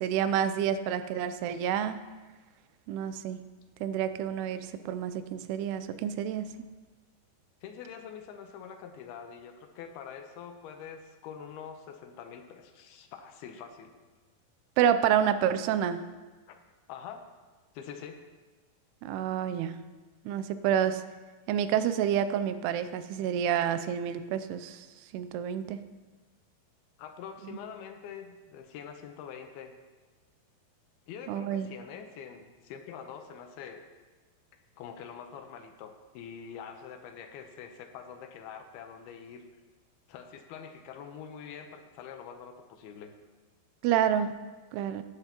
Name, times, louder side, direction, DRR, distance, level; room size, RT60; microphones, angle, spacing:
voice 1, 0.0-2.0 2.9-3.4 3.8-6.7 14.8-16.0 19.0-19.8 20.3-21.0 21.5-24.9 25.1-25.8 27.5-27.6 31.3-31.7 43.8-44.3 44.7-45.0, right 9 dB, 85° right, 11 dB, 2.7 m, -28 dB
voice 2, 7.6-13.9 16.5-16.6 16.9-17.3 17.7-18.2 27.0-29.8 31.1-33.8 34.5-39.4 40.1-43.1, left 7 dB, 80° left, 6 dB, 2.7 m, -45 dB
17.0 x 9.9 x 3.0 m, 1.3 s
omnidirectional pair, 4.6 m